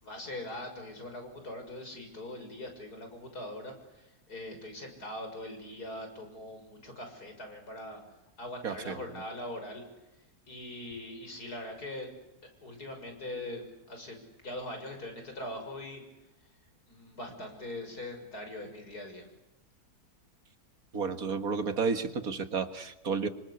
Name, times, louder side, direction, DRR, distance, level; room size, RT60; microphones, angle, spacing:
voice 1, 0.0-8.0 8.4-9.8 10.5-12.1 12.6-14.2 14.4-16.0 16.9-19.3, left 1 dB, 75° left, 5 dB, 7.0 m, -41 dB
voice 2, 8.6-8.9 20.9-23.3, right 5 dB, 65° right, 9 dB, 2.2 m, -31 dB
27.5 x 25.5 x 8.3 m, 0.93 s
omnidirectional pair, 1.7 m